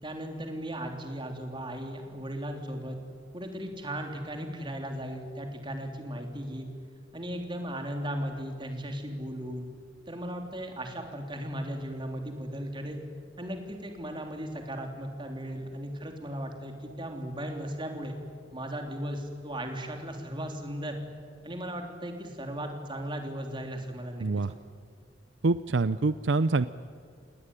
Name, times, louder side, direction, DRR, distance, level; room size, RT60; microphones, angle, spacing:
voice 1, 0.0-3.0 3.3-6.7 7.1-9.7 10.1-13.0 13.4-18.2 18.5-21.0 21.4-24.3, equal, 25° right, 4 dB, 3.3 m, -36 dB
voice 2, 24.2-24.5 25.4-26.7, right 3 dB, 70° right, 14 dB, 0.6 m, -25 dB
28.5 x 19.0 x 9.9 m, 2.1 s
head